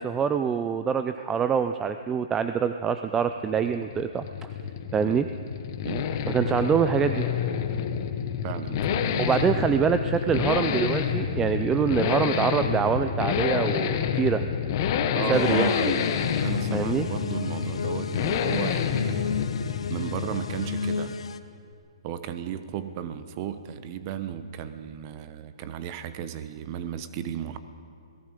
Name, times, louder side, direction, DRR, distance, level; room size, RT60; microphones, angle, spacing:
voice 1, 0.0-4.2 4.9-5.3 6.3-7.3 9.2-14.4 15.3-15.7 16.7-17.1, right 7 dB, 10° right, 9 dB, 0.4 m, -25 dB
sound 1, 3.2-21.3, left 8 dB, 35° left, 1.2 m, -28 dB
voice 2, 5.8-6.1 8.4-9.7 15.1-19.4 19.9-21.2 22.0-27.6, right 9 dB, 30° right, 11 dB, 1.0 m, -35 dB
sound 2, 15.3-21.4, left 5 dB, 70° left, 1.1 m, -33 dB
28.0 x 18.0 x 5.2 m, 2.4 s
hypercardioid pair, 155°, 3 cm